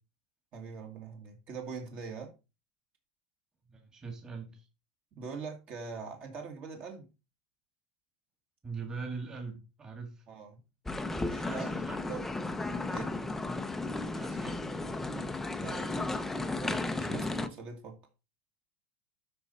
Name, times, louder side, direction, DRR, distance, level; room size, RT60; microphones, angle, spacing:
voice 1, 0.5-2.3 5.1-7.1 10.3-10.6 11.3-11.7 12.0-12.2 12.9-13.1 15.5-16.0 16.6-18.0, right 5 dB, 35° right, 2.0 m, -42 dB
voice 2, 3.7-4.6 8.6-10.2 11.4-12.0 14.1-14.6, right 4 dB, 15° right, 2.1 m, -41 dB
sound 1, 10.9-17.5, left 2 dB, 5° left, 0.6 m, -34 dB
12.5 x 4.4 x 4.2 m
supercardioid pair, 155°, 4 cm